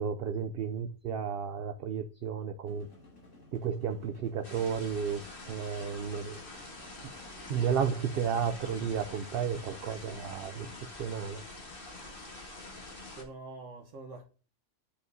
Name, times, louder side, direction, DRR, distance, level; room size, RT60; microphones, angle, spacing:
voice 1, 0.0-2.9 3.5-5.2 5.5-6.4 7.0-7.1 7.5-10.7 11.0-11.4, right 7 dB, 60° right, 0.7 m, -32 dB
sound 1, 2.7-10.7, left 1 dB, 90° left, 3.0 m, -56 dB
sound 2, 4.4-13.2, left 2 dB, 45° left, 1.7 m, -46 dB
voice 2, 12.8-14.2, right 3 dB, 80° right, 1.4 m, -46 dB
9.9 x 5.3 x 2.7 m
omnidirectional pair, 1.3 m